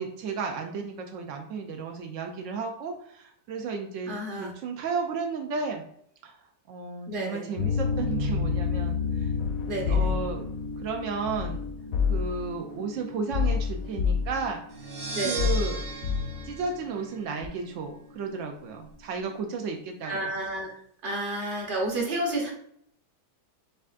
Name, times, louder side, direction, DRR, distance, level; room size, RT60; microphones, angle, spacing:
voice 1, 0.0-5.9 6.2-6.3 6.7-9.3 9.8-10.5 10.8-11.7 12.1-14.6 15.2-15.9 16.4-20.3, right 5 dB, 85° right, 3 dB, 0.6 m, -33 dB
voice 2, 4.1-4.5 7.1-7.5 9.7-10.1 15.1-15.5 20.0-20.7 21.0-22.5, right 1 dB, 40° right, -1 dB, 0.9 m, -31 dB
sound 1, 7.6-18.8 19.2-19.3 19.6-19.7 20.2-20.3, left 5 dB, 85° left, 1.4 m, -34 dB
sound 2, 9.4-10.4 11.2-12.5 13.3-14.5 15.4-16.6 17.4-17.5, left 6 dB, 70° left, 0.8 m, -28 dB
sound 3, 14.7-17.5, right 4 dB, 70° right, 1.4 m, -37 dB
6.7 x 2.4 x 2.4 m, 0.67 s
omnidirectional pair, 1.8 m